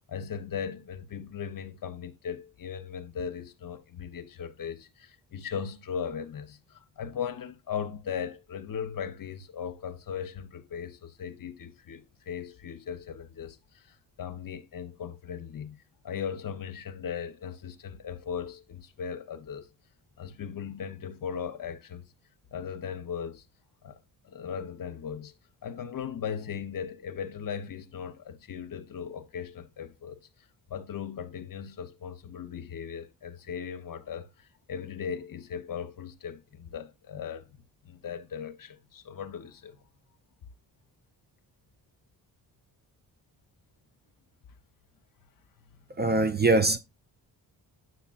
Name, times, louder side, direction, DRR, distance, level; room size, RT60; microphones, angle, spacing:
voice 1, 0.1-19.7 20.2-22.1 22.5-23.4 23.8-24.0 24.2-25.3 25.6-30.2 30.7-37.5 37.8-39.8, left 7 dB, 50° left, 0.8 m, -38 dB
voice 2, 46.0-46.8, right 3 dB, 25° right, 0.5 m, -22 dB
7.9 x 5.8 x 2.4 m
cardioid pair, 65°, 43 cm